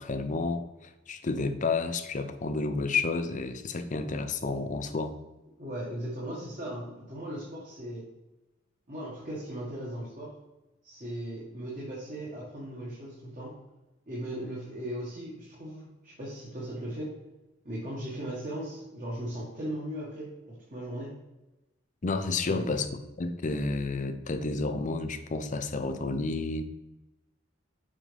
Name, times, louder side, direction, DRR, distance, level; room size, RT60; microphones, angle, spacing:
voice 1, 0.0-5.2 22.0-22.9 23.2-26.6, left 3 dB, 40° left, 9 dB, 0.6 m, -31 dB
voice 2, 5.6-8.1 8.9-10.3 10.8-13.5 14.1-17.1 17.6-21.1 22.5-22.7, right 1 dB, 40° right, -6 dB, 1.7 m, -38 dB
7.5 x 5.0 x 3.4 m, 1.0 s
head